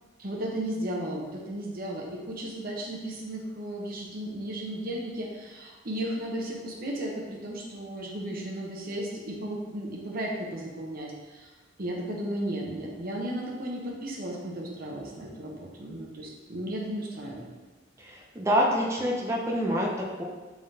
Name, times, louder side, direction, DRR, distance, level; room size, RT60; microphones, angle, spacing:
voice 1, 0.2-11.5 11.8-17.5, right 1 dB, 50° right, -2 dB, 0.8 m, -35 dB
voice 2, 18.0-20.2, equal, 15° right, -2 dB, 0.5 m, -27 dB
5.3 x 3.6 x 2.7 m, 1.3 s
head